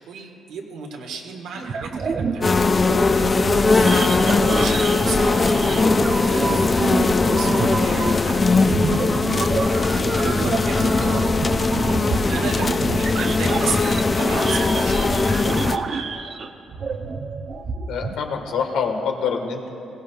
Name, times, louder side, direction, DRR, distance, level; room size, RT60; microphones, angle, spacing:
voice 1, 0.0-2.6 3.7-7.5 7.8-9.7 9.9-11.4 12.1-15.0, right 5 dB, 85° right, 2 dB, 1.7 m, -34 dB
sound 1, 1.5-18.1, right 5 dB, 50° right, 0.7 m, -28 dB
sound 2, 2.4-15.8, left 3 dB, 30° left, 0.5 m, -20 dB
voice 2, 17.9-19.7, left 6 dB, 90° left, 3 dB, 1.4 m, -25 dB
19.5 x 17.0 x 2.4 m, 2.7 s
cardioid pair, 90°, 0 cm